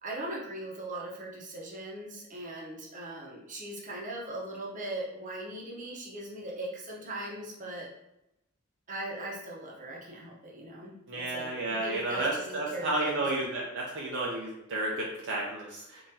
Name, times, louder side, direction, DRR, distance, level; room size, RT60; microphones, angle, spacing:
voice 1, 0.0-7.9 8.9-13.3, right 1 dB, 40° right, -3 dB, 0.9 m, -40 dB
voice 2, 11.1-16.0, right 2 dB, 60° right, -3 dB, 0.6 m, -32 dB
3.8 x 3.1 x 2.7 m, 0.87 s
head